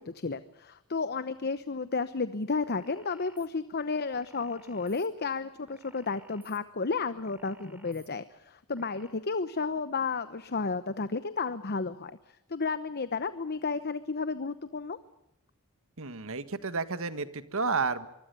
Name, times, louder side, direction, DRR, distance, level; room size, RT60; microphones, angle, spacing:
voice 1, 0.0-12.2 12.5-15.0, left 4 dB, 45° left, 13 dB, 0.9 m, -32 dB
sound 1, 2.6-3.5 4.1-5.1 5.7-6.6 7.2-8.1 8.7-9.1, right 1 dB, 10° right, 3.4 m, -57 dB
voice 2, 16.0-18.1, right 4 dB, 65° right, 12 dB, 1.7 m, -31 dB
25.0 x 24.0 x 6.9 m, 0.86 s
head